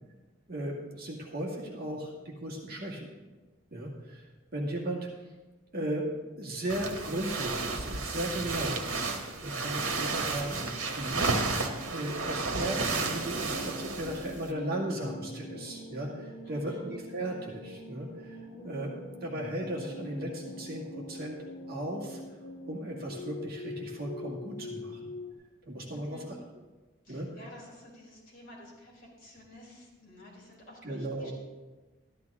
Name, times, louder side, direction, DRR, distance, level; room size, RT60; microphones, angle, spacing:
voice 1, 0.5-3.1 3.7-4.2 4.5-5.1 5.7-6.1 6.4-8.9 9.4-11.6 11.9-18.4 18.6-18.9 19.2-20.8 21.1-21.4 21.7-22.2 22.7-25.1 25.7-26.2 27.1-27.3 30.8-31.3, right 1 dB, 45° right, -3 dB, 2.0 m, -36 dB
sound 1, 6.7-14.5, right 3 dB, 90° right, 1.5 m, -32 dB
sound 2, 11.3-25.3, left 1 dB, 75° left, 1.8 m, -44 dB
voice 2, 16.4-16.8 25.9-26.3 27.0-31.3, left 1 dB, 45° left, -4 dB, 4.3 m, -51 dB
13.0 x 12.0 x 3.6 m, 1.2 s
head